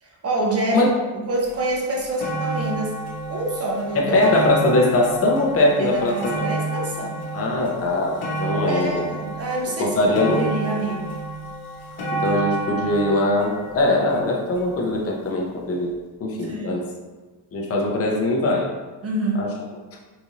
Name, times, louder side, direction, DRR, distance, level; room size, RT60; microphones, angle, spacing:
voice 1, 0.0-0.8 1.1-2.9 3.3-4.3 5.6-7.3 8.7-11.2 16.5-16.8 19.0-19.5, right 2 dB, 30° right, -2 dB, 0.8 m, -27 dB
sound 1, 1.5-1.6 1.9-15.1 15.9-16.0, right 2 dB, 50° left, 1.0 m, -30 dB
voice 2, 3.9-6.1 7.3-9.2 9.8-10.6 12.1-15.9 16.2-16.9 17.5-18.7 19.4-19.5, left 2 dB, 30° left, -1 dB, 0.6 m, -21 dB
3.9 x 2.5 x 3.0 m, 1.3 s
cardioid pair, 115°, 49 cm